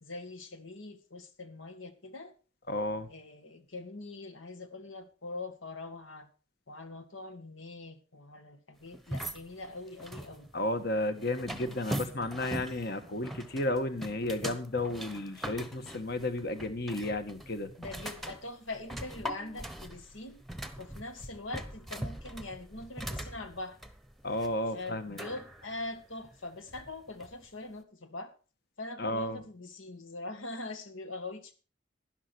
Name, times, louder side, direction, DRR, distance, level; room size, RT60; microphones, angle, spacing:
voice 1, 0.0-2.3 3.1-6.3 6.7-10.5 17.8-20.4 20.8-23.8 24.7-28.3 28.8-31.5, left 2 dB, 85° left, 9 dB, 2.0 m, -43 dB
voice 2, 2.7-3.1 10.5-17.7 24.2-25.2 29.0-29.4, left 1 dB, 55° left, 9 dB, 1.5 m, -33 dB
sound 1, 8.9-27.5, right 1 dB, ahead, 1.0 m, -42 dB
12.0 x 11.0 x 4.6 m, 0.36 s
head